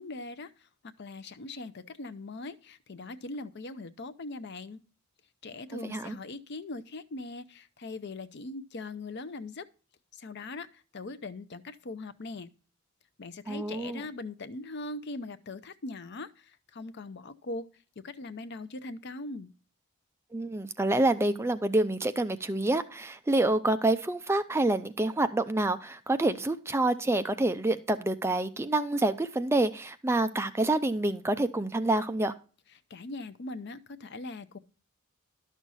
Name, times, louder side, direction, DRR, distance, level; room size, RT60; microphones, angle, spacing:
voice 1, 0.0-4.8 5.4-9.7 10.1-12.5 13.2-17.7 18.0-19.5 32.9-34.6, left 2 dB, 50° left, 0.6 m, -41 dB
voice 2, 5.8-6.2 13.5-14.0 20.3-32.3, right 2 dB, 10° right, 0.4 m, -27 dB
12.0 x 6.3 x 4.0 m
head